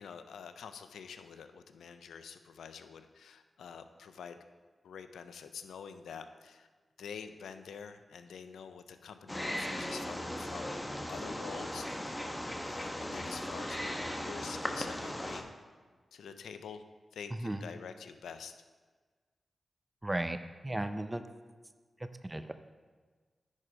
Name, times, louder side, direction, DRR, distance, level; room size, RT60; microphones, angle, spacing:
voice 1, 0.0-4.4 4.8-6.7 7.0-10.8 11.1-12.3 12.6-15.5 16.1-16.8 17.1-18.5, left 6 dB, 90° left, 9 dB, 0.4 m, -47 dB
Wild animals, 9.3-15.4, left 1 dB, 10° left, 1.1 m, -37 dB
voice 2, 20.0-20.4 20.6-21.2 22.3-22.5, right 1 dB, 20° right, 9 dB, 0.6 m, -34 dB
9.6 x 4.8 x 5.0 m, 1.4 s
supercardioid pair, 40°, 0 cm